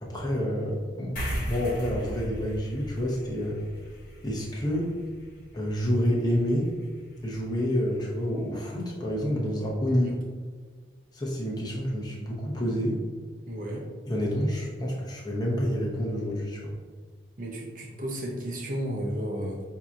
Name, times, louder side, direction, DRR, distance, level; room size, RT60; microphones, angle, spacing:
voice 1, 0.0-3.6 4.2-4.9 5.5-6.7 7.2-10.1 11.1-13.0 14.1-16.7, equal, 20° left, -3 dB, 0.8 m, -28 dB
sound 1, 1.2-7.9, equal, 50° left, 1.2 m, -38 dB
voice 2, 13.5-13.8 17.4-19.6, right 1 dB, 45° right, -1 dB, 0.8 m, -33 dB
5.5 x 2.8 x 2.4 m, 1.5 s
head